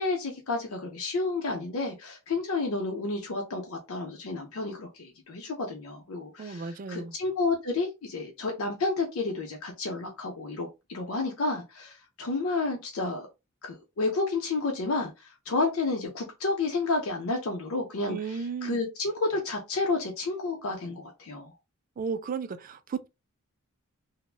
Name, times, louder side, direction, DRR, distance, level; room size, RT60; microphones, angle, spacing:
voice 1, 0.0-13.3 13.6-21.5, left 3 dB, 70° left, 0.6 m, -31 dB
voice 2, 6.4-7.2 18.1-18.8 22.0-23.1, right 5 dB, 40° right, 0.3 m, -34 dB
3.3 x 2.0 x 2.3 m
head